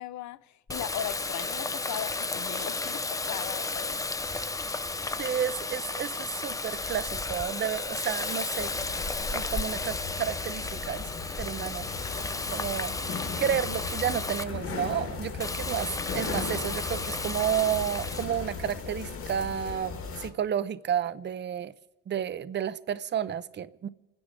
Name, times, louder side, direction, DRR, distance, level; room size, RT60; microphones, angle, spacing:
voice 1, 0.0-4.0 16.0-16.3, left 11 dB, 55° left, 0.7 m, -38 dB
Water tap faucet, 0.7-14.4 15.4-18.3, left 3 dB, 10° left, 0.5 m, -33 dB
voice 2, 5.2-8.7 9.3-11.1 11.4-12.9 13.4-21.7 22.1-23.9, right 9 dB, 30° right, 0.6 m, -31 dB
sound 1, 8.6-20.3, left 5 dB, 40° left, 1.7 m, -37 dB
29.0 x 9.8 x 3.7 m
cardioid pair, 95°, 34 cm